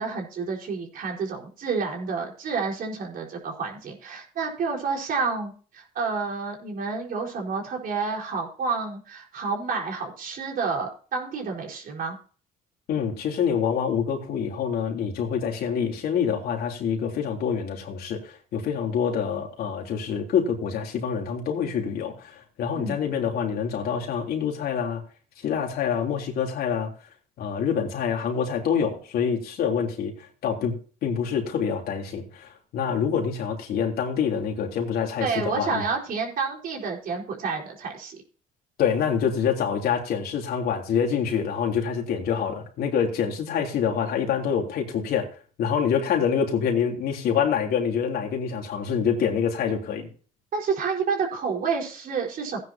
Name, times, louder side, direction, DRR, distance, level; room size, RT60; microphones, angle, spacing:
voice 1, 0.0-12.2 22.7-22.9 35.2-38.2 50.5-52.6, right 5 dB, 60° right, 0 dB, 4.8 m, -29 dB
voice 2, 12.9-25.0 25.4-26.9 27.4-35.8 38.8-45.3 45.6-50.1, left 7 dB, 65° left, 1 dB, 3.5 m, -26 dB
17.0 x 9.8 x 2.9 m, 0.40 s
cardioid pair, 110°, 17 cm